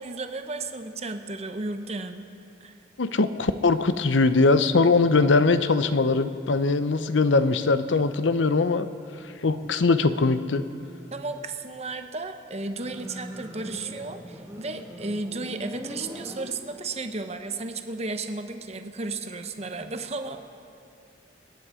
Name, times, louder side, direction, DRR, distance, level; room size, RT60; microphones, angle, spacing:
voice 1, 0.0-2.3 2.6-2.7 11.1-20.4, right 3 dB, 35° right, 7 dB, 0.8 m, -34 dB
voice 2, 3.0-8.9 9.4-10.6, left 3 dB, 80° left, 11 dB, 0.7 m, -21 dB
Motorcycle, 12.7-17.0, equal, 15° right, 1.6 m, -41 dB
29.0 x 9.9 x 4.9 m, 2.7 s
head